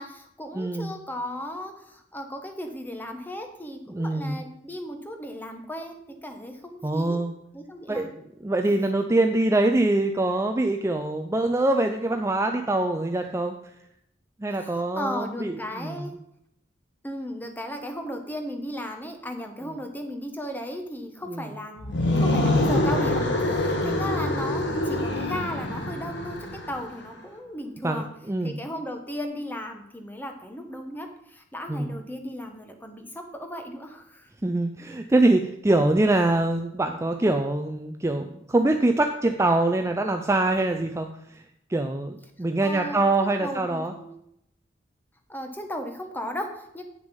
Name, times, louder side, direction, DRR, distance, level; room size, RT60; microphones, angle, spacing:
voice 1, 0.0-7.2 7.5-8.1 14.6-16.1 17.0-28.1 28.4-34.3 42.6-44.1 45.3-46.8, equal, 10° left, 5 dB, 1.0 m, -36 dB
voice 2, 0.5-0.9 3.9-4.4 6.8-7.3 7.9-8.1 8.4-13.6 14.4-16.0 21.3-21.5 23.8-24.0 27.8-28.6 31.7-31.9 34.4-41.1 41.3-41.4 41.7-43.9, right 2 dB, 15° right, 5 dB, 0.5 m, -24 dB
sound 1, 21.8-26.8, left 1 dB, 65° left, 1.3 m, -25 dB
9.1 x 6.4 x 5.4 m, 0.76 s
head